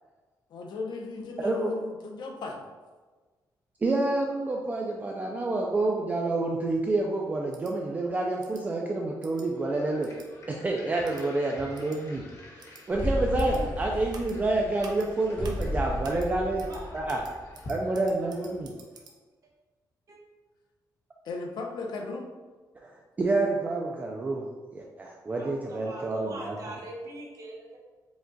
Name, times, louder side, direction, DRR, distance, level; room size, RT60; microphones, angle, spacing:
voice 1, 0.5-2.6 13.5-13.8 21.2-22.3, left 3 dB, 70° left, 2 dB, 0.7 m, -36 dB
voice 2, 1.4-1.7 3.8-10.1 10.5-12.2 12.5-16.6 16.9-17.2 17.7-18.7 22.8-22.9 23.2-24.5 24.7-26.5, right 2 dB, 20° right, -1 dB, 0.4 m, -28 dB
sound 1, 7.5-7.7 8.4-8.6 9.2-9.5 10.0-10.3 11.0-11.2 11.7-12.0 12.6-12.8 13.4-13.6 14.1-14.4 14.8-15.1 15.4-15.7 16.0-16.3 16.6-16.8 17.1-19.1, right 4 dB, 65° right, 0.6 m, -49 dB
sound 2, 9.5-18.8, left 1 dB, 40° left, 0.8 m, -49 dB
sound 3, 12.9-17.7, left 1 dB, 20° left, 0.9 m, -33 dB
voice 3, 16.6-17.3 18.2-18.4 20.1-20.2 25.4-27.8, right 1 dB, 50° right, -2 dB, 1.0 m, -42 dB
4.9 x 2.3 x 3.8 m, 1.3 s
wide cardioid pair, 160°, 8 cm